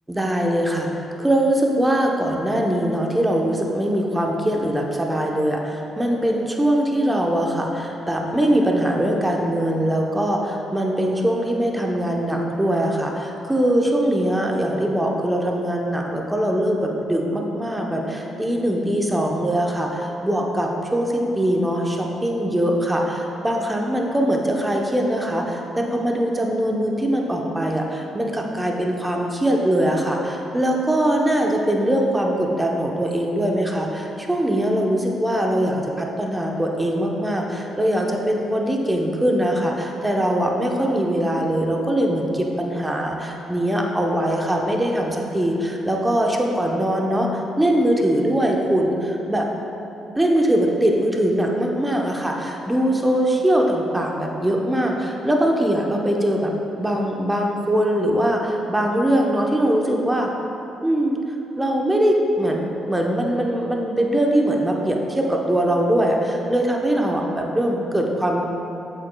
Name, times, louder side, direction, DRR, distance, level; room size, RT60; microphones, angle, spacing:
voice 1, 0.1-49.5 50.1-60.3 60.8-61.2 61.6-68.4, right 1 dB, 10° right, 0 dB, 0.8 m, -22 dB
7.9 x 7.5 x 2.3 m, 3.0 s
cardioid pair, 90°, 0 cm